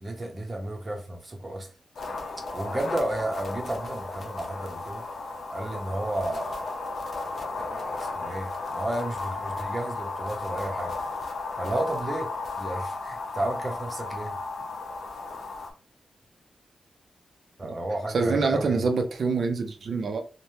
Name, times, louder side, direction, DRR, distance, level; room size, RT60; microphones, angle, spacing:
voice 1, 0.0-1.7 2.5-5.0 5.5-6.7 7.6-10.9 11.6-12.3 12.6-14.4 17.6-18.8, right 1 dB, 30° right, 3 dB, 0.8 m, -32 dB
sound 1, 2.0-15.7, left 3 dB, 60° left, 0.6 m, -34 dB
voice 2, 18.1-20.2, right 4 dB, 65° right, 5 dB, 0.5 m, -25 dB
3.3 x 2.2 x 2.7 m, 0.36 s
wide cardioid pair, 120°, 0 cm